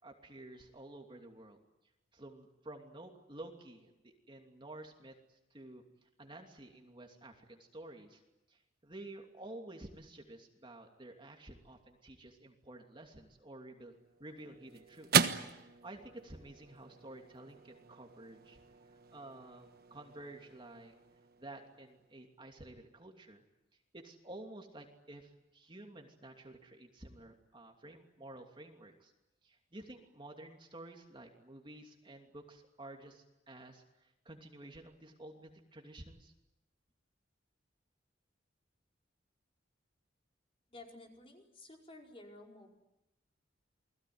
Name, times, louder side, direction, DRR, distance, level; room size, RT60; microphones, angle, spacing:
voice 1, 0.0-1.6 2.1-5.1 5.5-5.8 6.2-8.2 8.5-15.3 15.6-18.6 19.1-20.9 21.4-23.4 23.9-29.1 29.4-36.3, right 1 dB, 30° right, 3 dB, 2.8 m, -51 dB
sound 1, 13.8-22.4, right 6 dB, 55° right, 1.3 m, -38 dB
voice 2, 40.7-42.7, left 2 dB, 30° left, 1 dB, 4.9 m, -53 dB
29.5 x 20.5 x 9.6 m, 0.93 s
head